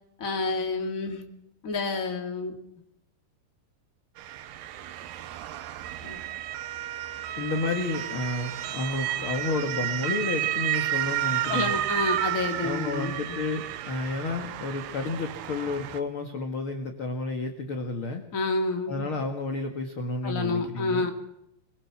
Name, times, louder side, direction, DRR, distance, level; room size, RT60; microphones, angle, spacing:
voice 1, 0.2-1.2 1.6-2.5 6.0-6.2 11.5-13.4 18.3-19.1 20.2-21.1, left 3 dB, 25° left, 4 dB, 1.9 m, -29 dB
Motor vehicle (road) / Siren, 4.2-16.0, right 13 dB, 75° right, 2.9 m, -32 dB
voice 2, 7.4-11.7 12.6-18.2 18.9-21.1, left 3 dB, 50° left, 5 dB, 1.6 m, -31 dB
23.0 x 23.0 x 6.0 m, 0.82 s
omnidirectional pair, 4.9 m